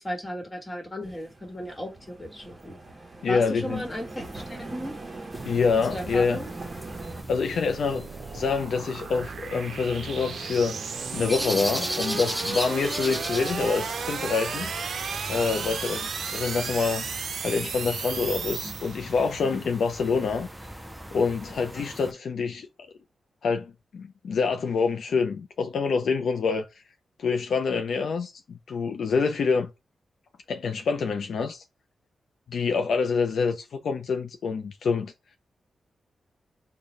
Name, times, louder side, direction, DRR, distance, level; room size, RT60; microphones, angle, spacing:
voice 1, 0.0-2.8 3.3-4.9 5.9-6.5, equal, 20° left, 1.3 m, -35 dB
sound 1, 1.0-7.2, right 2 dB, 30° right, 0.8 m, -41 dB
voice 2, 3.2-3.8 5.5-6.4 7.3-8.1 8.3-10.8 11.1-14.7 15.3-17.0 17.4-20.5 21.1-22.7 23.4-26.7 27.2-28.3 28.7-29.7 30.5-31.6 32.5-35.1, left 5 dB, 75° left, 0.4 m, -26 dB
sound 2, 5.0-19.4, right 5 dB, 70° right, 0.5 m, -35 dB
sound 3, 5.3-22.1, equal, 5° right, 0.5 m, -38 dB
3.9 x 2.2 x 3.1 m
wide cardioid pair, 100°, 0 cm